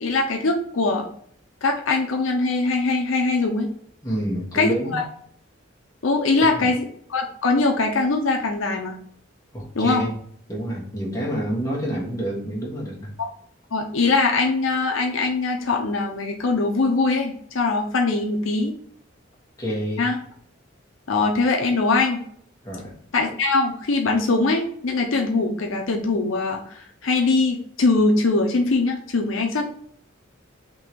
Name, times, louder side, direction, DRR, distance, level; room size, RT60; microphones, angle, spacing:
voice 1, 0.0-1.1 1.6-3.7 4.5-5.1 6.0-6.8 7.1-8.9 9.7-10.0 13.7-18.7 20.0-20.2 21.1-22.2 23.1-29.7, left 3 dB, 80° left, 2 dB, 0.7 m, -22 dB
voice 2, 4.0-5.0 6.4-6.7 9.5-10.2 10.5-13.1 19.6-20.1 22.6-22.9, equal, 15° left, -5 dB, 1.5 m, -28 dB
3.8 x 2.8 x 4.5 m, 0.63 s
head